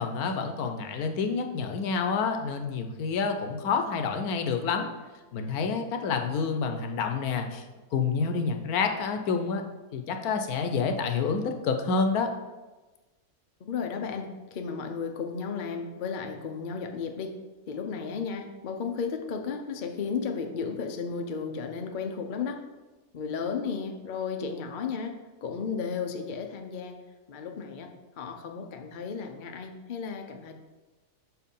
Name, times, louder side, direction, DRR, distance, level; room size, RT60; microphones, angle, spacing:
voice 1, 0.0-4.9 5.3-7.6 7.9-9.6 9.9-12.3, left 5 dB, 75° left, 5 dB, 1.2 m, -28 dB
voice 2, 13.6-17.4 17.7-22.6 23.1-27.0 27.3-30.5, left 5 dB, 55° left, 4 dB, 0.5 m, -34 dB
6.2 x 4.6 x 5.4 m, 1.2 s
omnidirectional pair, 1.7 m